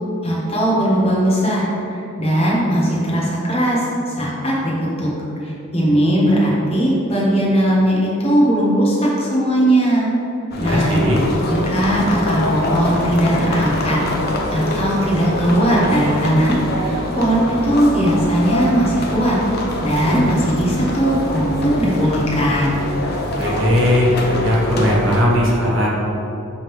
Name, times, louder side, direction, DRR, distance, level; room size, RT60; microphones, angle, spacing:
voice 1, 0.2-5.1 5.4-10.1 10.6-11.0 11.5-14.0 14.3-19.4 19.8-22.8, right 1 dB, 25° left, -5 dB, 1.2 m, -18 dB
sound 1, 10.5-25.2, left 1 dB, 45° left, 0.7 m, -24 dB
voice 2, 10.6-11.2 23.2-25.9, left 1 dB, 60° right, -4 dB, 1.4 m, -18 dB
6.3 x 3.5 x 4.6 m, 3.0 s
head